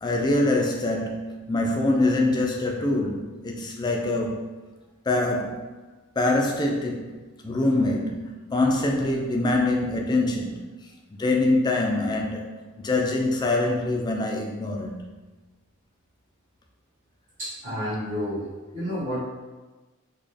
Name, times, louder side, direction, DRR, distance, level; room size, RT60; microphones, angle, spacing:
voice 1, 0.0-4.4 5.1-5.6 6.2-7.2 7.4-10.7 11.2-12.5 12.8-15.0, left 2 dB, 20° left, 1 dB, 0.3 m, -24 dB
voice 2, 17.4-18.5 18.7-19.2, equal, 35° right, -16 dB, 1.3 m, -30 dB
4.1 x 2.2 x 3.3 m, 1.2 s
head